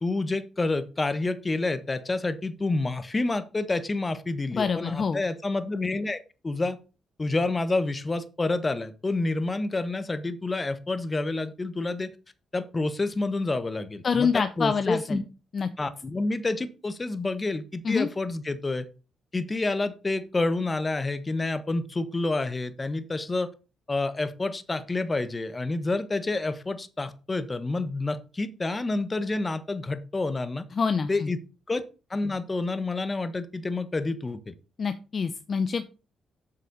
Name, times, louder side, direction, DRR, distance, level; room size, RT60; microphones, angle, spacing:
voice 1, 0.0-6.8 7.2-12.1 12.5-15.2 15.8-18.9 19.3-23.5 23.9-30.6 31.1-31.4 31.7-31.8 32.1-34.5, left 2 dB, 30° left, 12 dB, 1.3 m, -28 dB
voice 2, 4.5-5.2 14.0-15.2 15.5-15.7 17.8-18.1 30.7-31.3 34.8-35.8, left 5 dB, 50° left, 11 dB, 0.7 m, -26 dB
7.9 x 5.7 x 5.3 m, 0.33 s
hypercardioid pair, 50°, 0 cm